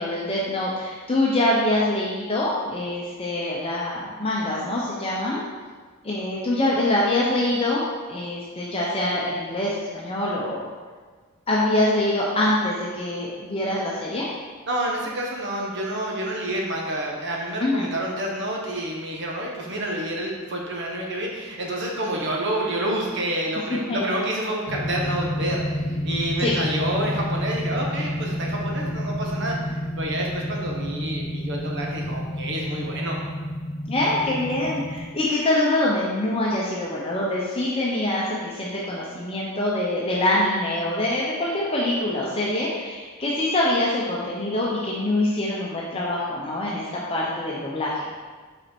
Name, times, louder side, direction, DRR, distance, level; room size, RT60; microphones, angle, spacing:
voice 1, 0.0-5.4 6.0-7.8 8.1-10.7 11.5-14.3 17.6-17.9 23.6-24.0 26.4-26.6 33.9-47.9, left 1 dB, 25° left, -5 dB, 0.7 m, -24 dB
voice 2, 14.7-33.2, right 1 dB, 55° right, -1 dB, 1.1 m, -28 dB
sound 1, 24.7-35.0, equal, 50° left, 0.9 m, -29 dB
5.5 x 4.3 x 4.4 m, 1.4 s
head